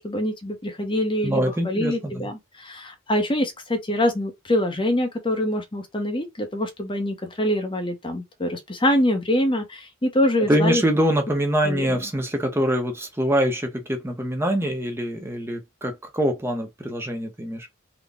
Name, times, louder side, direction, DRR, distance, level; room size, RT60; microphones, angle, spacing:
voice 1, 0.0-10.8 11.6-12.0, left 1 dB, 25° left, 0.8 m, -25 dB
voice 2, 1.2-2.1 10.5-17.7, equal, 10° right, 0.7 m, -24 dB
3.9 x 2.2 x 3.5 m
head